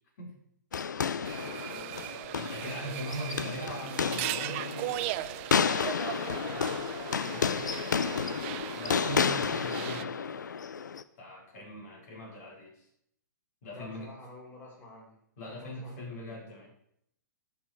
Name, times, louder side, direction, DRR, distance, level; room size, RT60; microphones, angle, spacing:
sound 1, 0.7-11.0, left 6 dB, 75° left, 0.6 m, -31 dB
voice 1, 1.0-2.1 2.6-3.5 6.4-7.0 7.2-8.6 11.6-11.7 13.7-15.2 15.5-16.7, left 2 dB, 20° left, -2 dB, 4.4 m, -50 dB
sound 2, 1.2-10.0, right 15 dB, 40° right, 0.6 m, -38 dB
voice 2, 2.3-4.9 7.3-7.9 8.8-10.5 11.2-12.9 13.6-14.1 15.4-16.7, equal, 55° left, -2 dB, 5.3 m, -41 dB
18.5 x 6.3 x 4.6 m, 0.72 s
figure-of-eight pair, 115°, 10 cm